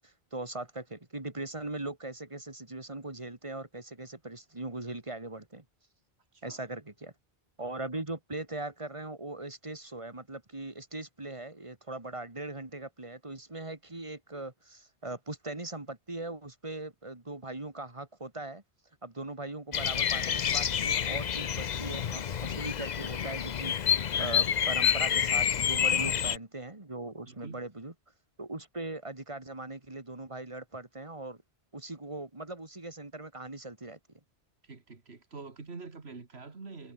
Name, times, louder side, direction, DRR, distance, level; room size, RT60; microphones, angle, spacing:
voice 1, 0.0-5.6 6.4-7.1 7.6-18.6 19.0-27.9 28.4-31.4 31.7-34.0, right 2 dB, 30° right, 2.6 m, -40 dB
voice 2, 6.3-6.6 23.9-24.3 25.8-26.1 27.2-27.6 34.6-36.9, right 4 dB, 80° right, 2.5 m, -46 dB
Bird vocalization bird call bird song, 19.7-26.4, left 8 dB, 50° left, 0.7 m, -28 dB
omnidirectional pair, 1.1 m